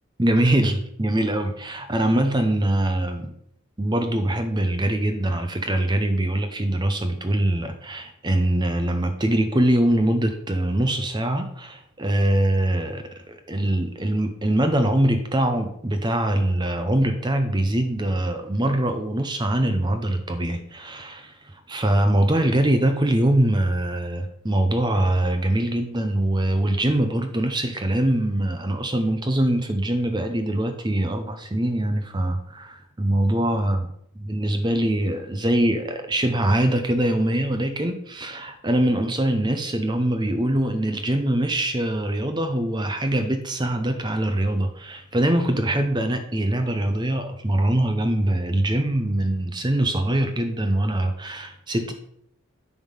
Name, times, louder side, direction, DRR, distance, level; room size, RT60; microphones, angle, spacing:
voice 1, 0.2-3.3 3.8-33.9 34.3-51.9, right 1 dB, 20° right, 6 dB, 0.7 m, -23 dB
10.0 x 3.6 x 6.5 m, 0.73 s
head